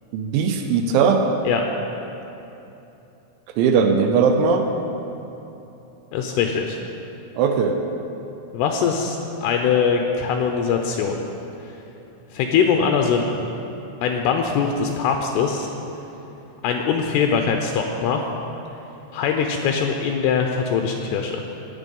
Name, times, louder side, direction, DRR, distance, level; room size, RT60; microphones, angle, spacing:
voice 1, 0.1-1.3 3.6-4.7 7.4-7.8, right 5 dB, 80° right, 5 dB, 3.0 m, -19 dB
voice 2, 6.1-6.8 8.5-11.2 12.3-13.5 14.0-15.7 16.6-18.2 19.1-21.4, left 6 dB, 85° left, 3 dB, 2.3 m, -22 dB
19.0 x 7.5 x 5.3 m, 3.0 s
omnidirectional pair, 5.6 m